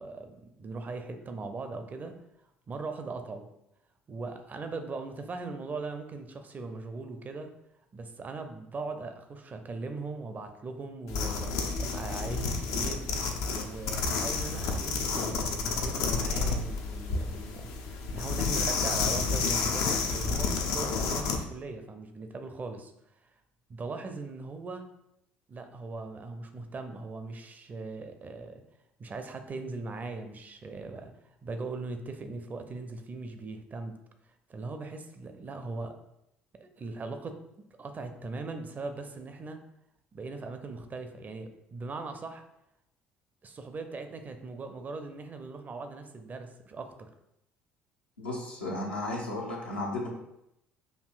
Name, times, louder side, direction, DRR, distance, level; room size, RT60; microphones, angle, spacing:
voice 1, 0.0-2.2 2.7-3.5 4.1-7.5 7.9-13.1 13.5-22.9 23.7-24.8 25.5-28.6 29.0-31.1 31.4-34.0 34.5-36.0 36.5-37.4 37.8-39.6 40.1-42.4 43.4-47.1, right 3 dB, 30° right, 7 dB, 0.5 m, -39 dB
sound 1, 11.1-21.4, left 4 dB, 60° left, 0.5 m, -30 dB
voice 2, 48.2-50.1, left 2 dB, 80° left, -3 dB, 0.8 m, -34 dB
6.4 x 2.7 x 2.5 m, 0.82 s
figure-of-eight pair, 55°, 6 cm